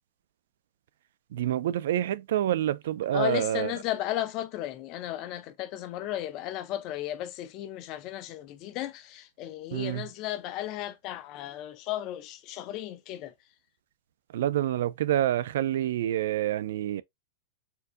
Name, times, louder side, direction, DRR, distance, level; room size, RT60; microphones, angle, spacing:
voice 1, 1.3-3.7 9.7-10.0 14.3-17.0, right 12 dB, 60° right, 0.3 m, -27 dB
voice 2, 3.1-13.3, left 13 dB, 30° left, 0.4 m, -34 dB
4.5 x 2.6 x 2.4 m
supercardioid pair, 180°, 0 cm